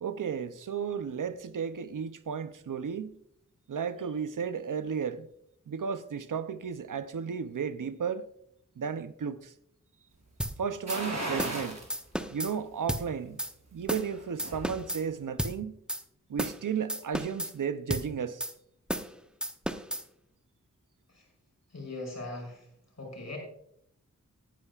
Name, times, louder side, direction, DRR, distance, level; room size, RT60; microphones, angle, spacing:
voice 1, 0.0-3.2 3.7-5.3 5.7-8.2 8.8-9.5 10.6-11.8 12.3-13.4 13.7-15.8 16.3-18.4, right 7 dB, 80° right, 0.7 m, -34 dB
sound 1, 10.4-10.6 10.9-11.0 11.4-11.6 11.9-12.5 12.9-13.1 13.4-13.5 13.9-14.1 14.4-15.0 15.4-15.6 15.9-16.0 16.4-16.6 16.9-17.5 17.9-18.1 18.4-18.5 18.9-19.1 19.4-20.0, equal, 5° right, 0.7 m, -33 dB
sound 2, 10.9-11.9 12.4-12.5 14.0-14.8 15.1-15.2, right 1 dB, 60° right, 4.5 m, -35 dB
voice 2, 21.7-22.7 23.0-23.4, left 2 dB, 60° left, 5.4 m, -40 dB
18.0 x 10.0 x 2.4 m
wide cardioid pair, 70°, 31 cm